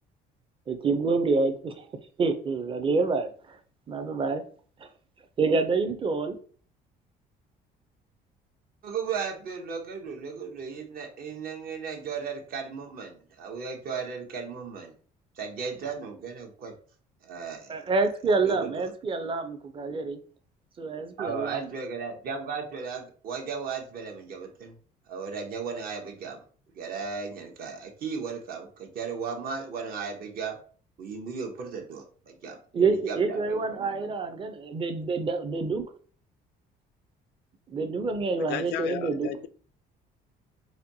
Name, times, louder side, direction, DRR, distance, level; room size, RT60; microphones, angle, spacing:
voice 1, 0.7-1.9 2.2-3.6 3.9-4.4 4.8-4.9 5.4-6.4 17.7-20.2 20.8-21.7 32.7-35.8 37.7-39.3, right 4 dB, 30° right, 0.5 m, -27 dB
voice 2, 8.8-14.9 15.4-16.7 17.2-17.8 18.5-18.8 21.2-24.7 25.1-26.4 26.7-30.6 31.0-34.0, right 5 dB, 60° right, 0.9 m, -36 dB
voice 3, 38.5-39.5, left 10 dB, 85° left, 0.4 m, -34 dB
4.2 x 2.3 x 2.7 m
cardioid pair, 110°, 17 cm